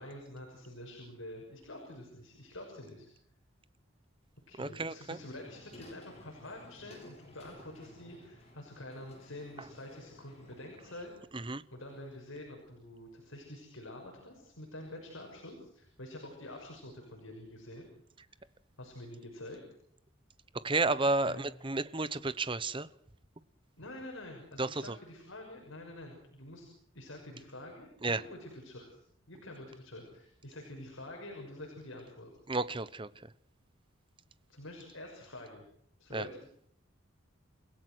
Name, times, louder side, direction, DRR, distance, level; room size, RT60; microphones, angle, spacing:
voice 1, 0.0-3.1 4.5-11.1 11.4-17.9 18.3-18.5 18.8-19.6 21.3-21.5 23.8-26.7 26.9-29.0 29.3-32.3 34.5-35.6 36.0-36.4, left 1 dB, 80° left, 6.4 m, -47 dB
voice 2, 4.6-5.2 11.3-11.6 20.6-22.9 24.6-24.9 28.0-28.2 32.5-33.1 36.1-36.2, right 3 dB, 25° right, 1.0 m, -32 dB
sound 1, 5.1-10.9, left 1 dB, 30° left, 7.9 m, -55 dB
29.5 x 17.0 x 6.4 m
head